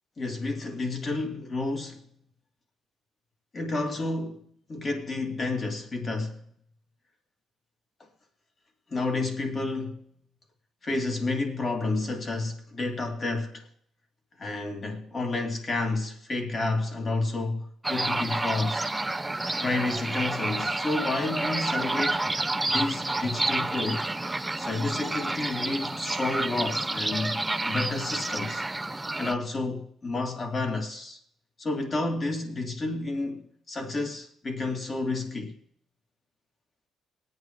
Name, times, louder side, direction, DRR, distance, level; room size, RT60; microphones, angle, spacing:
voice 1, 0.2-2.1 3.5-6.4 8.0-8.1 8.9-10.0 10.8-13.7 14.4-18.9 19.6-22.2 22.7-24.1 24.6-28.7 29.2-31.2 31.6-35.6, left 2 dB, 40° left, 2.6 m, -30 dB
sound 1, 17.8-29.3, right 2 dB, 10° right, 0.6 m, -29 dB
20.5 x 8.9 x 3.1 m
cardioid pair, 90°, 0 cm